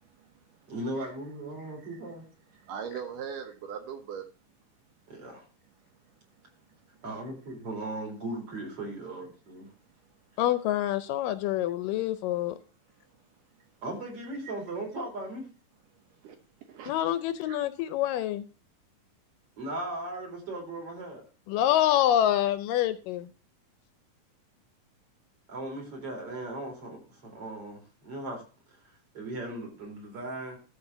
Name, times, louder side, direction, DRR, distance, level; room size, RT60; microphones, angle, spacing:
voice 1, 0.7-2.3 5.1-5.4 7.0-9.7 13.8-15.5 19.6-21.2 25.5-28.4 28.8-30.6, right 2 dB, 40° right, 4.8 m, -37 dB
voice 2, 2.6-4.3 16.2-16.4 16.7-16.9 17.5-17.6, right 7 dB, 70° right, 2.5 m, -39 dB
voice 3, 10.4-12.6 16.9-18.5 21.5-23.3, left 12 dB, 80° left, 2.2 m, -26 dB
13.5 x 4.5 x 6.8 m
omnidirectional pair, 4.0 m